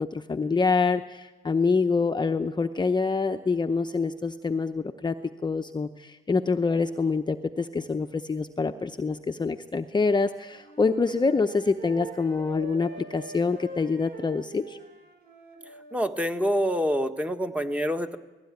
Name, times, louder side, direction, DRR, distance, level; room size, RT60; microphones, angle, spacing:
voice 1, 0.0-5.1 5.4-14.8, left 4 dB, 20° left, 7 dB, 0.8 m, -26 dB
Wind instrument woodwind instrument, 10.5-16.0, right 2 dB, 50° right, 5.2 m, -44 dB
voice 2, 15.9-18.2, equal, 5° right, 7 dB, 1.4 m, -26 dB
19.0 x 16.0 x 9.6 m, 1.2 s
cardioid pair, 90°, 20 cm